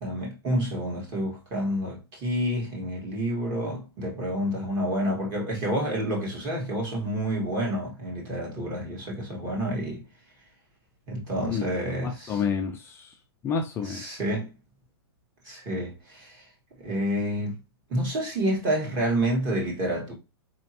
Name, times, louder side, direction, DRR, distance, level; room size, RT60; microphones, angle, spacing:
voice 1, 0.0-10.0 11.1-12.4 13.8-14.5 15.4-16.4 16.8-17.6 17.9-20.1, equal, 25° right, 1.7 m, -29 dB
voice 2, 11.5-13.1 13.4-14.0, left 6 dB, 15° left, 0.4 m, -30 dB
4.2 x 3.0 x 2.8 m
hypercardioid pair, 150°, 14 cm